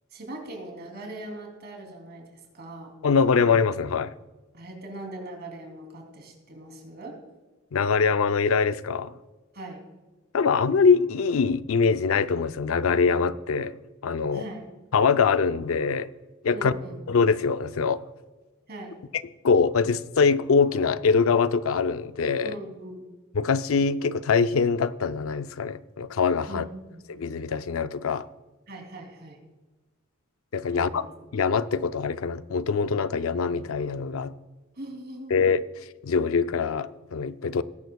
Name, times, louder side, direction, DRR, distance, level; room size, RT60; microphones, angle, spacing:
voice 1, 0.1-2.9 4.5-7.2 9.5-9.8 14.3-14.7 16.5-17.0 18.7-19.0 22.4-23.1 26.5-27.0 28.7-29.4 30.7-31.0 34.8-35.5, right 1 dB, 50° right, 2.9 m, -40 dB
voice 2, 3.0-4.1 7.7-9.1 10.3-13.8 14.0-14.4 14.9-16.1 16.4-16.7 17.1-18.0 19.4-22.6 23.3-26.6 27.1-28.3 30.5-31.1 31.3-34.3 35.3-35.6 36.0-37.6, left 5 dB, 75° left, 0.5 m, -23 dB
20.0 x 10.5 x 2.3 m
head